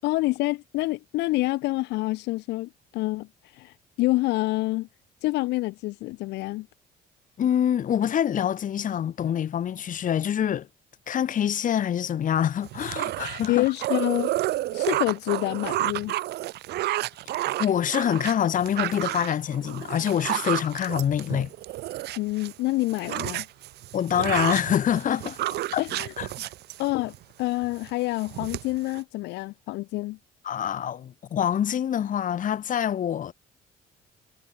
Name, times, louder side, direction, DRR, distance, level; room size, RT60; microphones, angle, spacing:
voice 1, 0.0-4.9 5.2-6.7 13.5-14.3 14.7-16.1 22.2-23.4 25.8-26.1 26.8-30.2, left 20 dB, 90° left, 6.4 m, -27 dB
voice 2, 7.4-10.7 11.1-13.6 17.3-21.5 23.9-25.4 25.7-25.8 26.2-26.3 30.4-33.3, left 9 dB, 50° left, 4.2 m, -25 dB
sound 1, 12.6-22.5 22.8-27.2 27.6-27.9 28.2-29.0, right 15 dB, 75° right, 4.0 m, -31 dB
cardioid pair, 110°, 17 cm